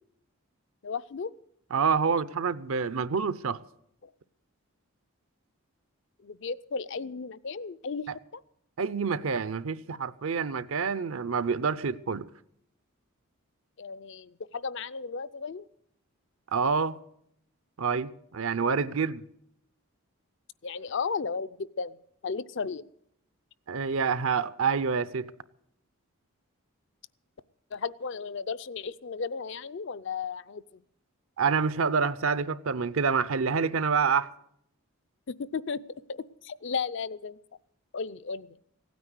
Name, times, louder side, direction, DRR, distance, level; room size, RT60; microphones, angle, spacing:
voice 1, 0.8-1.3 6.2-8.1 8.3-8.4 13.8-15.6 20.6-21.9 22.2-22.8 27.7-30.6 35.3-35.8 36.1-37.4 37.9-38.6, left 5 dB, 55° left, 0.5 m, -34 dB
voice 2, 1.7-3.6 8.1-8.2 8.8-12.3 16.5-17.0 17.8-19.2 23.7-25.3 31.4-34.3, right 5 dB, 70° right, 0.6 m, -27 dB
16.5 x 9.5 x 8.0 m
head